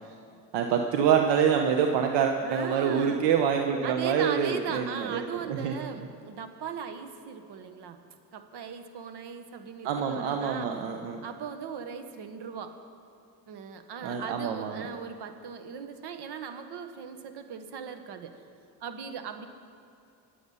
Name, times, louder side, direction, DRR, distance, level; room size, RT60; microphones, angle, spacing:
voice 1, 0.5-5.7 9.8-11.2 14.0-14.9, right 7 dB, 85° right, 4 dB, 1.0 m, -26 dB
voice 2, 2.4-3.2 3.8-8.0 8.3-10.7 11.2-12.8 13.5-18.4 18.8-19.5, right 7 dB, 65° right, 8 dB, 1.5 m, -38 dB
24.5 x 8.4 x 5.6 m, 2.5 s
supercardioid pair, 75°, 42 cm